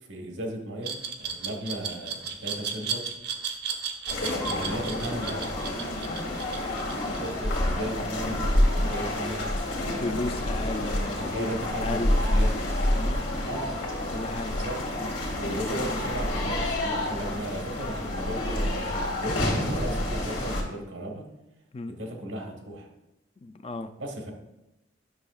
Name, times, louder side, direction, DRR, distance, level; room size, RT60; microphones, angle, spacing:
voice 1, 0.1-3.1 4.4-5.4 6.7-10.0 11.2-12.7 13.4-13.7 14.5-14.8 15.4-21.3 21.9-22.9 24.0-24.3, right 1 dB, 80° right, 2 dB, 1.3 m, -36 dB
Glass, 0.8-7.7, right 7 dB, 60° right, 0.9 m, -34 dB
sound 1, 4.1-20.6, left 1 dB, 80° left, 2.2 m, -28 dB
voice 2, 10.0-11.5 11.8-12.2 12.9-13.2 14.1-14.6 21.7-22.0 23.4-23.9, left 2 dB, 30° left, 10 dB, 0.4 m, -34 dB
11.0 x 6.2 x 2.4 m, 0.93 s
head